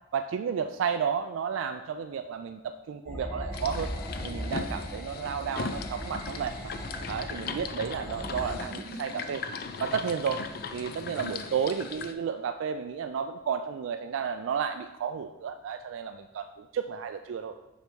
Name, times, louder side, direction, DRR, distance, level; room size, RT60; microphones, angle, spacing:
voice 1, 0.1-3.9 4.2-6.7 7.1-9.4 9.8-10.4 10.7-17.5, right 7 dB, 85° right, 7 dB, 0.3 m, -32 dB
sound 1, 3.1-8.6, equal, 10° left, 1.0 m, -38 dB
sound 2, 3.5-12.1, left 5 dB, 50° left, 0.4 m, -38 dB
Motorcycle, 7.3-10.6, right 2 dB, 15° right, 0.8 m, -49 dB
5.5 x 5.1 x 4.6 m, 1.1 s
head